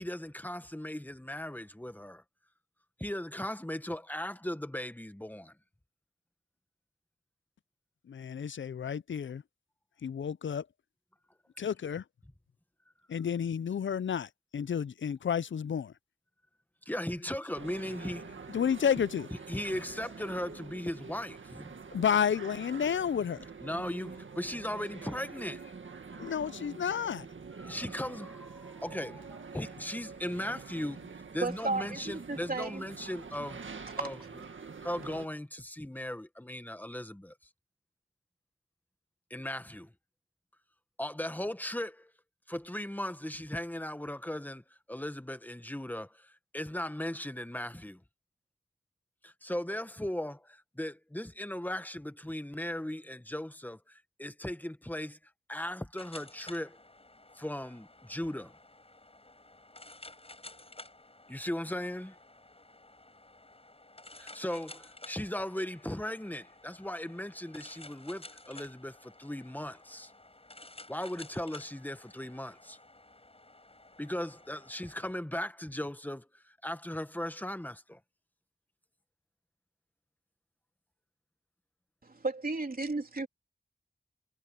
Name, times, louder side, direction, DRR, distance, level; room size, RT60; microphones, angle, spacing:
voice 1, 0.0-2.2 3.0-5.5 16.8-18.2 19.5-21.7 23.6-25.7 26.1-26.2 27.6-31.0 31.3-33.6 34.0-34.2 34.8-37.3 39.3-39.9 41.0-42.1 42.5-48.0 49.2-55.2 55.5-56.8 57.3-58.6 61.3-62.2 64.2-70.1 70.9-72.8 74.0-78.0, left 1 dB, 10° left, 1.4 m, -38 dB
voice 2, 8.1-9.4 10.0-10.7 11.6-12.0 13.1-15.9 18.5-19.3 21.9-23.4 26.2-27.3, left 8 dB, 75° left, 0.5 m, -31 dB
sound 1, 17.5-35.3, right 5 dB, 75° right, 1.9 m, -46 dB
voice 3, 31.4-32.8 34.0-34.1 82.0-83.3, right 3 dB, 45° right, 3.5 m, -34 dB
sound 2, 56.0-75.1, left 2 dB, 30° left, 5.7 m, -53 dB
wide cardioid pair, 70°, 20 cm